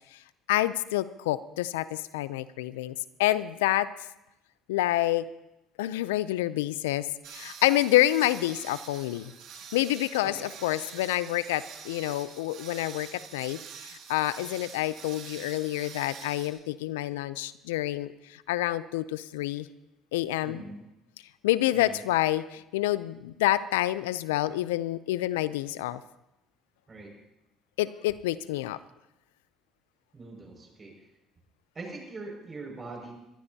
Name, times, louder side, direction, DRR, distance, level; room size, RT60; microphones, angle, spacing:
voice 1, 0.5-2.9 3.2-3.9 4.7-5.3 5.8-9.3 9.7-19.7 20.1-20.6 21.4-26.0 27.8-28.8, left 15 dB, 90° left, 16 dB, 0.4 m, -28 dB
sound 1, 7.2-16.5, right 7 dB, 65° right, 2.2 m, -46 dB
voice 2, 20.4-20.9 21.7-22.0 26.9-27.1 30.1-30.9 31.7-33.1, right 3 dB, 35° right, 1 dB, 5.8 m, -42 dB
21.5 x 14.5 x 2.8 m, 0.89 s
hypercardioid pair, 70°, 0 cm